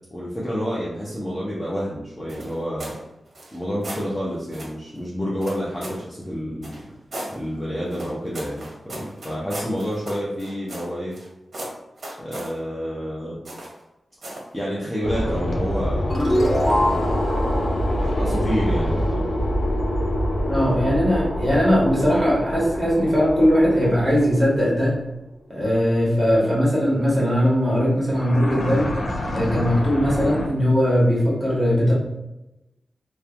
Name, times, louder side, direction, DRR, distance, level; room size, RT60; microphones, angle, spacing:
voice 1, 0.1-2.9 3.5-6.9 7.3-11.2 12.2-13.4 14.5-16.3 18.0-19.3, equal, 10° left, -6 dB, 0.5 m, -29 dB
sound 1, 2.3-3.0 3.3-4.1 4.5-4.8 5.4-6.1 6.6-7.3 7.9-11.3 11.5-12.5 13.4-13.8 14.2-14.5, right 1 dB, 50° right, 0.6 m, -36 dB
sound 2, 15.0-24.9 28.1-30.5, equal, 75° left, 0.4 m, -25 dB
sound 3, 16.1-19.3, equal, 25° left, 1.0 m, -25 dB
voice 2, 20.5-24.9 25.5-28.9 29.3-31.9, equal, 15° right, -7 dB, 1.1 m, -19 dB
2.9 x 2.1 x 2.4 m, 0.95 s
wide cardioid pair, 145°, 0 cm